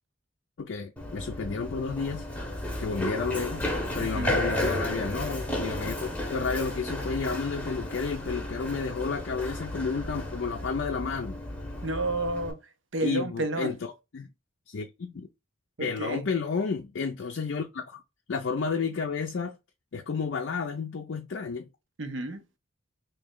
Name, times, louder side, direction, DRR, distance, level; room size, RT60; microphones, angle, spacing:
voice 1, 0.6-2.2 2.8-3.6 3.9-11.4 13.0-14.3 14.7-15.3 15.8-18.0 18.3-19.6 19.9-21.7, left 5 dB, 60° left, 0.4 m, -31 dB
Run, 1.0-12.5, left 1 dB, 10° left, 0.8 m, -33 dB
voice 2, 4.0-4.3 11.8-12.6 12.9-13.7 15.8-16.2 22.0-22.4, right 2 dB, 65° right, 0.8 m, -31 dB
3.1 x 2.7 x 3.6 m
head